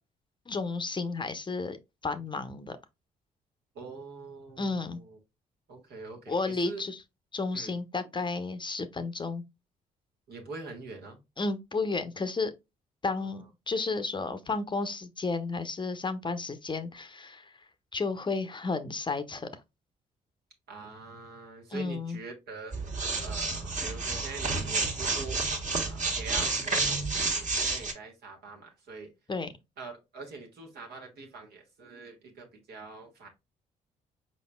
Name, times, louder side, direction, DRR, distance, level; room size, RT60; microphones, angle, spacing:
voice 1, 0.5-1.8 2.0-2.8 4.6-5.0 6.3-7.0 7.3-9.4 11.4-12.5 13.0-17.5 17.9-19.5 21.7-22.2 29.3-29.5, left 3 dB, 30° left, 0.6 m, -32 dB
voice 2, 3.7-5.2 5.7-6.8 7.5-7.7 10.3-11.2 20.7-22.7 23.2-25.4 25.8-27.0 27.3-29.1 29.8-33.3, right 4 dB, 75° right, 1.5 m, -44 dB
sound 1, 22.7-27.9, right 3 dB, 45° right, 1.5 m, -30 dB
4.7 x 4.2 x 2.2 m
supercardioid pair, 55°, 17 cm